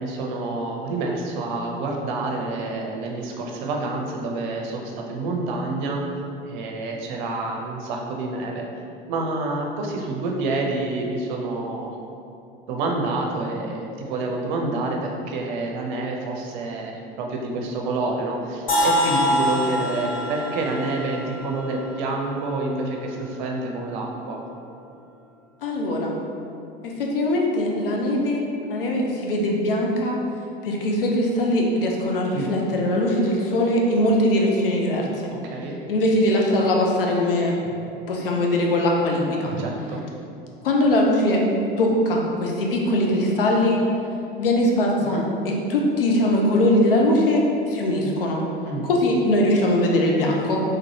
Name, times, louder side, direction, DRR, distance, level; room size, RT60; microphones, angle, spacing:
voice 1, 0.0-6.0 6.4-8.6 9.1-11.9 12.7-24.4 32.3-32.5 35.3-35.8 39.5-40.0 45.0-45.3 48.6-48.9, right 2 dB, 55° right, 1 dB, 0.6 m, -28 dB
sound 1, 18.7-22.6, equal, 30° left, 1.2 m, -25 dB
voice 2, 25.6-26.1 26.8-30.2 30.6-35.3 35.9-37.5 38.1-39.5 40.6-41.4 41.8-43.8 44.4-48.4 48.8-50.6, left 1 dB, 70° left, -1 dB, 0.7 m, -21 dB
3.8 x 3.3 x 2.8 m, 2.6 s
figure-of-eight pair, 75°, 29 cm